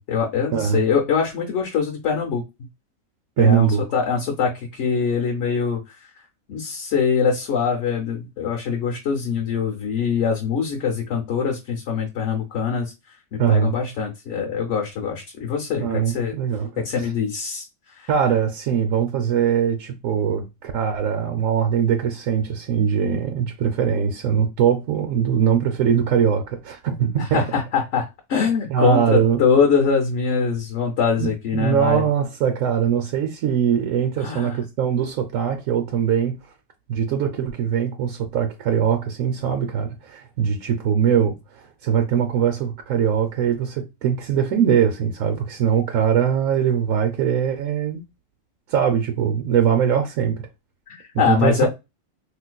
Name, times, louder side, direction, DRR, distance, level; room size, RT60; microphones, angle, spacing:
voice 1, 0.0-2.4 3.4-6.1 6.5-16.3 16.8-18.1 27.2-32.0 34.2-34.6 50.9-51.7, left 6 dB, 70° left, 1.0 m, -23 dB
voice 2, 0.5-0.8 3.4-3.8 13.4-13.7 15.8-16.8 18.1-27.4 28.7-29.4 31.2-36.4 36.9-48.0 48.7-50.5 51.3-51.7, right 8 dB, 80° right, 1.0 m, -21 dB
3.9 x 2.5 x 2.2 m
omnidirectional pair, 1.4 m